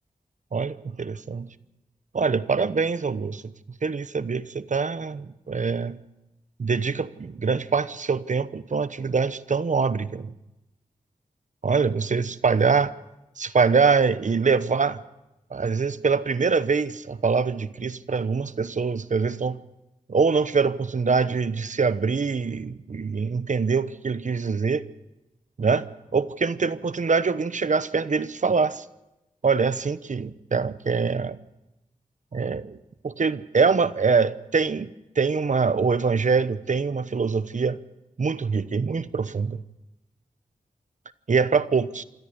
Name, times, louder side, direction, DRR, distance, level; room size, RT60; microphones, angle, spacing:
voice 1, 0.5-1.5 2.1-3.5 3.8-6.0 6.6-10.3 11.6-12.9 13.4-15.0 15.5-19.6 20.1-24.9 25.6-25.8 26.1-28.8 29.4-31.4 32.3-32.8 33.0-34.9 35.2-37.8 38.2-39.6 41.3-42.0, right 5 dB, 60° right, 1.0 m, -24 dB
26.0 x 13.5 x 8.1 m
cardioid pair, 45°, 14 cm